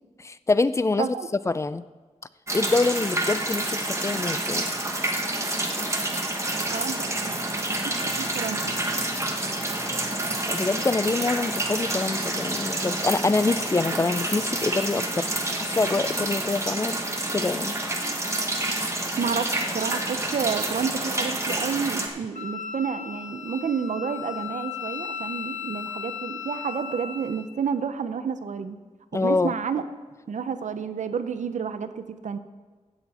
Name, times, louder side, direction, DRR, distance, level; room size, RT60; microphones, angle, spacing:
voice 1, 0.2-1.2 1.5-1.9 2.5-4.7 10.5-17.0 17.3-17.7 29.1-29.5, left 3 dB, 25° left, 15 dB, 0.3 m, -25 dB
voice 2, 1.0-1.3 6.7-7.4 7.8-8.8 19.2-28.8 29.1-29.8 30.3-32.4, right 6 dB, 80° right, 10 dB, 0.7 m, -30 dB
sound 1, 2.5-22.1, right 1 dB, 25° right, 1.2 m, -28 dB
Wind instrument woodwind instrument, 22.3-27.5, left 7 dB, 90° left, 1.1 m, -36 dB
15.5 x 8.1 x 4.2 m, 1.4 s
wide cardioid pair, 115°, 12 cm